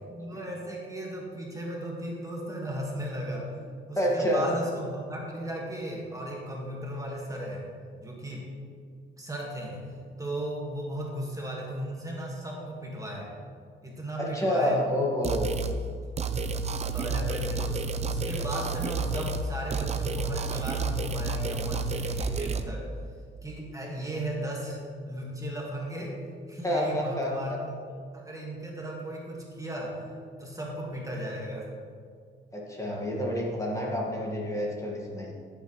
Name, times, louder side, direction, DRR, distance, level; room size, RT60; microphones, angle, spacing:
voice 1, 0.1-3.6 3.9-7.7 8.0-8.5 9.2-9.9 10.2-13.3 13.8-14.9 16.7-22.9 23.4-24.8 25.0-26.2 26.5-30.1 30.4-31.7, right 1 dB, 15° right, -2 dB, 1.9 m, -36 dB
voice 2, 4.0-4.5 14.2-15.5 26.6-27.6 32.5-35.3, left 1 dB, 15° left, -3 dB, 2.0 m, -28 dB
sound 1, 15.2-15.8 16.2-19.5 19.7-22.6, right 4 dB, 35° right, 0.7 m, -30 dB
14.0 x 7.6 x 3.3 m, 2.1 s
cardioid pair, 90°, 20 cm